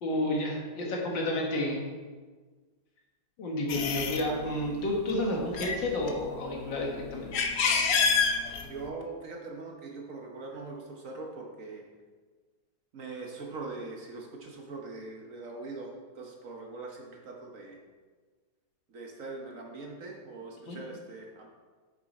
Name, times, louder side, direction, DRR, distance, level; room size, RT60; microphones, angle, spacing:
voice 1, 0.0-1.8 3.4-7.5 20.7-20.8, left 1 dB, 85° left, -1 dB, 2.3 m, -31 dB
sound 1, 3.7-4.3 5.0-5.2 5.4-6.5 7.1-8.9, left 5 dB, 60° left, 1.1 m, -27 dB
voice 2, 8.6-11.8 12.9-17.8 18.9-21.5, right 3 dB, 50° right, 0 dB, 1.3 m, -42 dB
8.4 x 6.9 x 4.2 m, 1.4 s
omnidirectional pair, 2.0 m